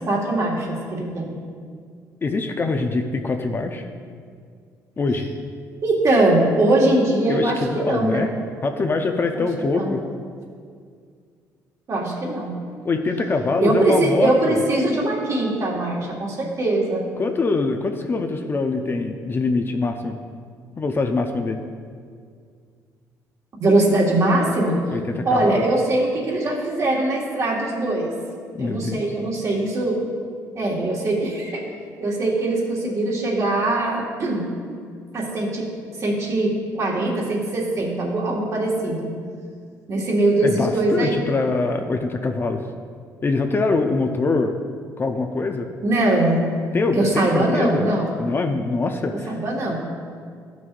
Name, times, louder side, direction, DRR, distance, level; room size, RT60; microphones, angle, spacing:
voice 1, 0.1-1.3 5.8-7.6 7.9-8.3 9.4-9.9 11.9-12.5 13.6-17.1 23.6-24.8 25.3-28.1 28.6-30.0 30.5-31.7 32.0-34.5 35.1-35.7 36.0-39.1 39.9-41.2 45.8-46.5 47.0-48.1 49.3-49.8, right 2 dB, 50° right, -2 dB, 1.7 m, -21 dB
voice 2, 2.2-3.9 5.0-5.3 7.3-8.3 8.6-10.0 12.8-14.6 17.2-20.2 20.8-21.6 24.9-25.7 28.5-29.0 40.4-42.7 43.2-44.5 45.0-45.7 46.7-47.9 48.2-49.3, left 3 dB, 30° left, 5 dB, 0.5 m, -23 dB
12.5 x 6.1 x 2.5 m, 2.1 s
cardioid pair, 90°, 7 cm